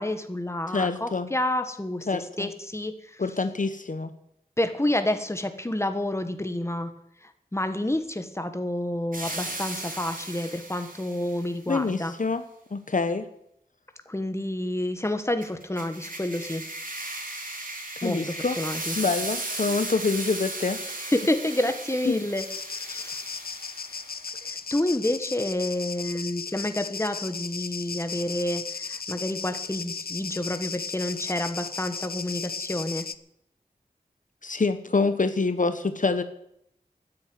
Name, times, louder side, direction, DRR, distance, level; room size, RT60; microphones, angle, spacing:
voice 1, 0.0-3.2 4.6-6.9 7.2-12.1 14.1-16.6 18.0-18.9 20.9-22.4 22.9-23.2 24.4-33.1, left 1 dB, 15° left, 8 dB, 1.5 m, -29 dB
voice 2, 0.7-1.3 2.1-2.5 3.2-4.1 11.7-12.4 12.7-13.3 18.0-18.6 19.0-20.8 22.1-22.2 34.4-36.2, left 4 dB, 55° left, 9 dB, 1.0 m, -26 dB
sound 1, 9.1-11.5 15.4-24.3, right 2 dB, 60° right, 3.4 m, -36 dB
sound 2, 22.4-33.1, left 5 dB, 75° left, 0.7 m, -36 dB
13.0 x 9.7 x 9.5 m, 0.75 s
wide cardioid pair, 70°, 16 cm